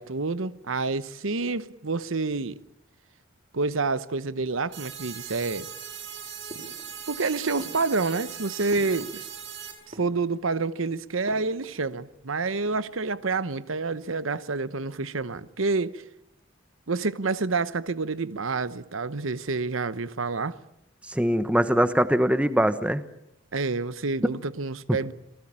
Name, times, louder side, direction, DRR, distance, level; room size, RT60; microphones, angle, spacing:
voice 1, 0.0-2.6 3.5-5.7 7.1-9.3 9.9-16.0 16.9-20.6 23.5-25.1, right 3 dB, 85° right, 1.0 m, -28 dB
sound 1, 4.7-9.7, right 8 dB, 65° right, 7.4 m, -39 dB
sound 2, 6.5-7.2 7.6-9.5 9.8-10.6 11.2-12.2 12.5-13.1, right 1 dB, 35° right, 5.8 m, -47 dB
voice 2, 21.1-23.0 24.2-24.3, equal, 5° right, 1.1 m, -22 dB
27.5 x 19.0 x 8.9 m
head